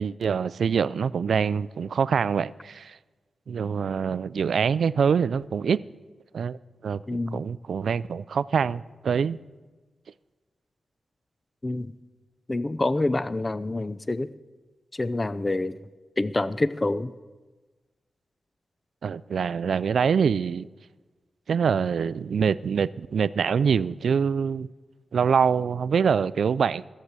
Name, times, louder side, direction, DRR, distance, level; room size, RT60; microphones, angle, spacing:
voice 1, 0.0-2.9 3.5-5.8 6.3-6.6 6.8-9.4 19.0-20.7 21.5-24.7 25.1-26.9, right 6 dB, 75° right, 0.4 m, -25 dB
voice 2, 7.1-7.4 11.6-11.9 12.5-14.3 14.9-15.8 16.2-17.1, left 2 dB, 25° left, 0.5 m, -27 dB
14.5 x 7.5 x 8.1 m
wide cardioid pair, 85°, 0 cm